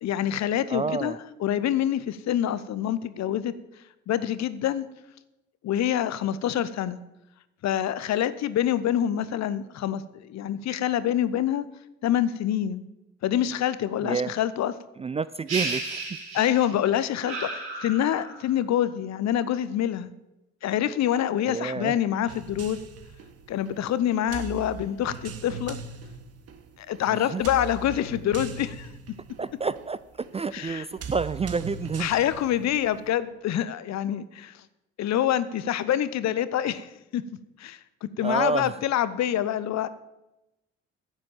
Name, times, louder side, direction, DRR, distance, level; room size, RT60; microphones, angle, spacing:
voice 1, 0.0-3.5 4.1-4.9 5.6-7.0 7.6-11.7 12.0-12.8 13.2-14.7 16.3-20.1 20.6-22.8 23.5-25.8 26.8-28.9 30.5-30.8 32.0-34.5 35.0-37.2 37.6-39.9, left 11 dB, 50° left, 15 dB, 0.8 m, -26 dB
voice 2, 0.7-1.2 14.0-14.3 15.0-16.0 21.5-21.9 27.1-27.4 29.4-30.0 30.3-32.1 38.2-38.8, right 5 dB, 20° right, 16 dB, 0.4 m, -29 dB
sound 1, 15.5-16.8 17.3-18.5, right 3 dB, 70° right, 4.3 m, -33 dB
sound 2, 22.3-33.2, right 6 dB, 45° right, 1.2 m, -41 dB
10.5 x 7.6 x 7.3 m, 0.94 s
figure-of-eight pair, 45°, 34 cm